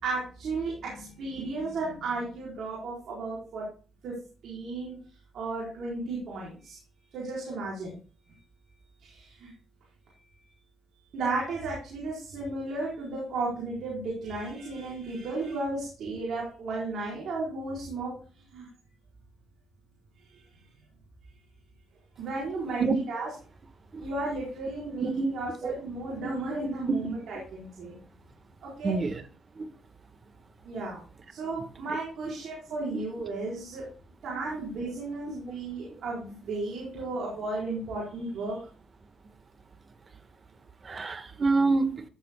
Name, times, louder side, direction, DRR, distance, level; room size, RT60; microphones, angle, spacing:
voice 1, 0.0-3.6 4.0-4.1 4.4-4.9 5.3-6.8 7.1-7.9 9.0-9.5 11.1-18.1 18.5-18.7 22.2-23.3 24.0-28.0 28.6-28.9 30.6-31.0 31.3-33.8 34.2-38.6, right 3 dB, 70° right, 4.4 m, -34 dB
voice 2, 28.8-29.2 29.5-29.7 32.2-32.3 32.9-33.0 35.9-36.0 40.8-42.0, right 3 dB, 35° right, 1.4 m, -27 dB
15.0 x 7.7 x 2.3 m
cardioid pair, 90°, 0 cm